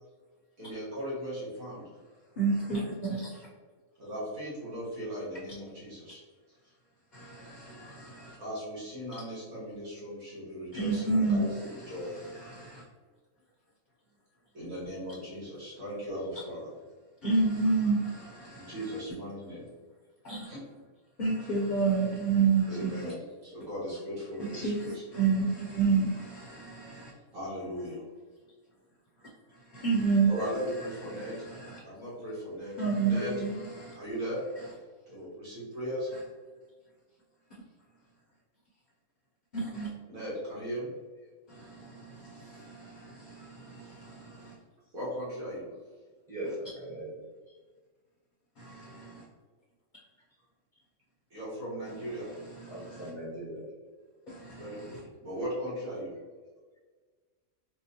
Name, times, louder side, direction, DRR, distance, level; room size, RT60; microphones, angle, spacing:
voice 1, 0.6-1.8 4.0-6.2 8.4-12.1 14.5-16.7 18.5-19.7 20.4-20.6 22.7-23.2 23.4-25.0 27.3-28.0 30.3-31.3 31.8-32.7 33.0-33.3 33.7-34.4 35.1-36.1 40.1-40.9 44.9-45.7 51.3-52.3 54.5-56.1, equal, 85° right, -9 dB, 2.1 m, -38 dB
voice 2, 2.4-2.8 3.1-3.2 10.7-11.4 17.2-18.0 20.3-20.4 21.2-22.9 24.5-24.8 25.2-26.1 29.8-30.4 32.8-33.6 39.5-39.9, right 4 dB, 45° left, -4 dB, 0.6 m, -26 dB
voice 3, 46.3-47.5 49.9-50.0 52.7-53.7, right 1 dB, 15° right, -7 dB, 0.8 m, -40 dB
4.5 x 2.3 x 2.8 m, 1.4 s
omnidirectional pair, 1.4 m